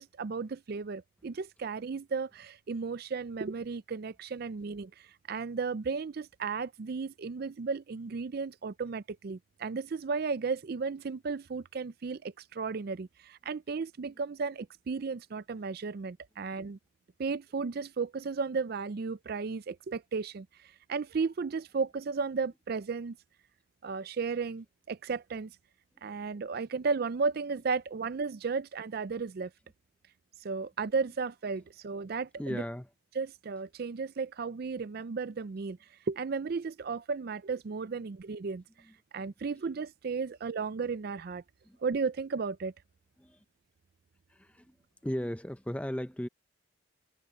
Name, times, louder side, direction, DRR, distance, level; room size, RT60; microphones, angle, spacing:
voice 1, 0.0-16.8 17.2-23.2 23.8-25.5 26.0-29.5 30.4-32.6 33.2-35.8 36.1-38.6 39.1-41.4 41.8-42.7, right 4 dB, 45° right, 0.4 m, -34 dB
voice 2, 32.4-32.9 38.8-38.9 41.6-41.8 43.2-43.4 44.3-44.8 45.0-46.3, equal, 5° left, 0.7 m, -36 dB
head